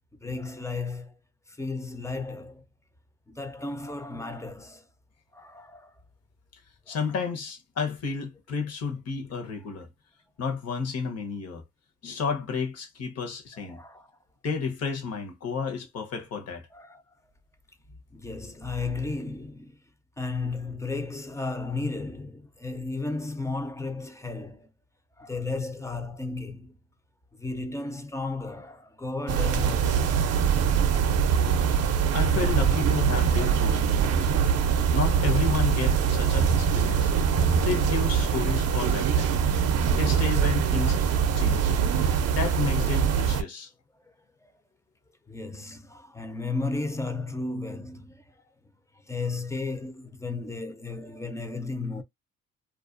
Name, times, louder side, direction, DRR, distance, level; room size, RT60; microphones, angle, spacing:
voice 1, 0.1-1.2 1.5-2.6 3.3-4.9 5.3-5.9 6.9-7.0 13.5-14.1 16.7-17.0 18.1-19.8 20.2-24.7 25.2-26.8 27.3-30.8 32.7-32.8 34.3-34.4 37.5-37.6 39.7-40.0 45.3-48.4 49.0-52.0, left 3 dB, 10° left, 0.4 m, -34 dB
voice 2, 6.9-9.9 10.4-11.6 12.0-13.8 14.4-16.7 32.1-34.3 34.9-37.1 37.6-39.3 39.9-41.0 41.4-41.7 42.3-43.7, left 5 dB, 55° left, 0.9 m, -31 dB
sound 1, 29.3-43.4, right 7 dB, 55° right, 0.5 m, -23 dB
2.4 x 2.2 x 2.4 m
cardioid pair, 90°, 30 cm